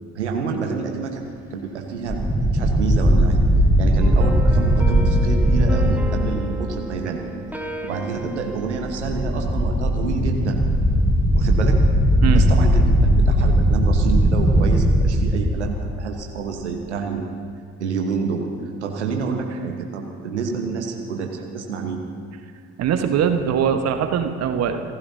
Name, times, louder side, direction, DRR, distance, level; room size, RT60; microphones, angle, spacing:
voice 1, 0.1-2.2 2.5-3.4 3.8-7.2 7.8-10.6 11.3-11.8 12.3-17.4 17.8-22.0, right 5 dB, 80° right, 3 dB, 1.2 m, -28 dB
sound 1, 2.1-6.0 8.8-16.1, equal, 15° left, 4.5 m, -18 dB
sound 2, 4.0-9.6, right 2 dB, 5° right, 1.6 m, -34 dB
voice 2, 22.8-24.8, right 8 dB, 50° right, 6 dB, 1.2 m, -21 dB
27.0 x 15.5 x 2.8 m, 2.3 s
figure-of-eight pair, 50°, 34 cm